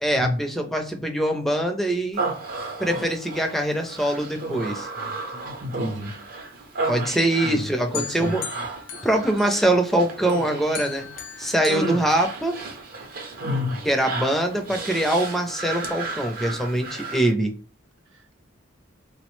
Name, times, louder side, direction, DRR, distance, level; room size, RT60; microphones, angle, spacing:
voice 1, 0.0-2.2 2.8-4.9 6.9-8.5 9.0-11.1 11.4-12.5 13.9-17.5, right 1 dB, ahead, 0.4 m, -23 dB
Human voice, 2.1-17.3, right 3 dB, 50° right, 0.6 m, -34 dB
voice 2, 5.6-6.2 7.4-8.4 13.4-13.8, left 2 dB, 85° right, 0.6 m, -29 dB
sound 1, 7.9-9.9 10.3-12.8, left 8 dB, 90° left, 0.5 m, -38 dB
3.5 x 2.0 x 3.0 m
head